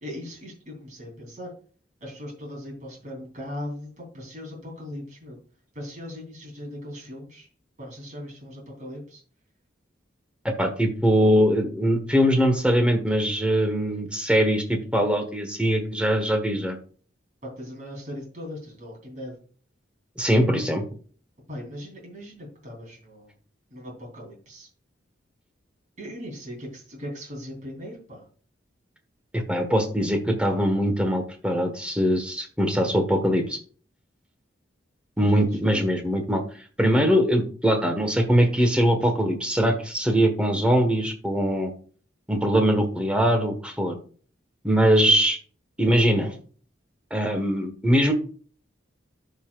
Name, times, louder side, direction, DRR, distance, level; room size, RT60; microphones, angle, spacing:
voice 1, 0.0-1.5 2.0-5.4 5.7-7.5 7.8-9.2 17.4-19.3 21.5-23.3 23.7-24.7 26.0-28.3 35.2-35.6, left 1 dB, 40° right, -2 dB, 3.2 m, -39 dB
voice 2, 10.6-16.8 20.2-20.8 29.3-33.6 35.2-36.4 36.8-41.7 42.3-43.9 44.6-45.4 45.8-46.3 47.1-48.1, equal, 5° right, 5 dB, 1.3 m, -22 dB
11.5 x 5.6 x 2.4 m, 0.42 s
head